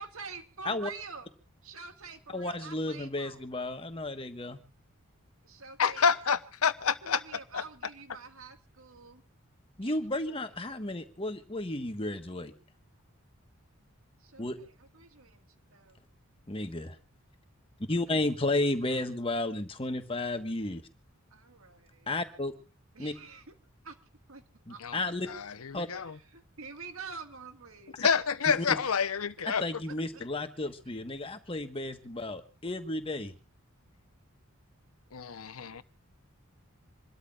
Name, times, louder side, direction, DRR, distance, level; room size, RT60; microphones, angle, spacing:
voice 1, 0.0-1.3 1.6-3.4 5.4-6.2 7.0-9.2 9.8-10.5 14.2-15.4 15.7-16.0 18.1-19.1 21.3-22.1 22.9-23.5 23.8-24.0 24.3-24.4 24.7-25.0 26.0-28.0 29.4-29.5 29.8-30.2 35.6-35.8, right 5 dB, 75° right, 1.9 m, -47 dB
voice 2, 2.3-4.6 9.8-12.5 14.4-14.6 16.5-17.0 17.9-20.8 22.1-22.5 23.0-23.1 24.7-25.3 25.7-25.9 28.6-28.8 29.5-33.3, left 2 dB, 25° left, 1.4 m, -33 dB
voice 3, 5.8-7.2 7.5-7.6 24.8-24.9 25.3-26.1 28.0-29.7 35.1-35.8, left 6 dB, 85° left, 0.9 m, -28 dB
27.5 x 13.0 x 2.5 m
head